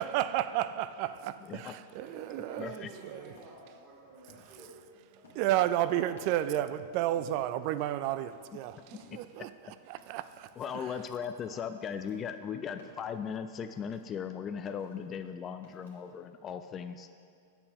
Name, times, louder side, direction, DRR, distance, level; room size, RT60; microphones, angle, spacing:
voice 1, 0.0-3.3 5.4-9.5 9.9-10.5 10.7-10.8, right 13 dB, 50° right, 14 dB, 0.3 m, -32 dB
voice 2, 1.4-1.7 2.6-2.9 8.7-8.8 9.1-9.2 10.6-17.2, left 7 dB, 30° left, 9 dB, 0.3 m, -38 dB
voice 3, 2.0-6.6, right 2 dB, 35° right, -6 dB, 2.0 m, -51 dB
sound 1, 3.3-6.7 7.0-14.3 14.6-16.2, left 2 dB, 80° left, 1.7 m, -60 dB
8.5 x 6.9 x 3.5 m, 2.3 s
hypercardioid pair, 110°, 0 cm